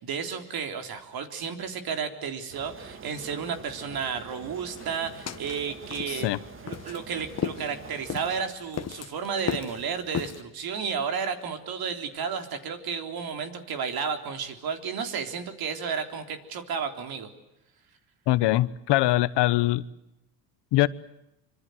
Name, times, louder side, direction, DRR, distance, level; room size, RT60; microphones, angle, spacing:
voice 1, 0.0-6.3 6.6-17.3, right 6 dB, 55° right, 6 dB, 3.8 m, -32 dB
sound 1, 2.5-8.4, right 5 dB, 30° right, 1.7 m, -45 dB
sound 2, 4.8-10.4, left 8 dB, 35° left, 1.7 m, -36 dB
voice 2, 18.3-19.8 20.7-20.9, left 16 dB, 65° left, 16 dB, 1.1 m, -22 dB
26.0 x 25.5 x 7.9 m, 0.87 s
cardioid pair, 120°, 44 cm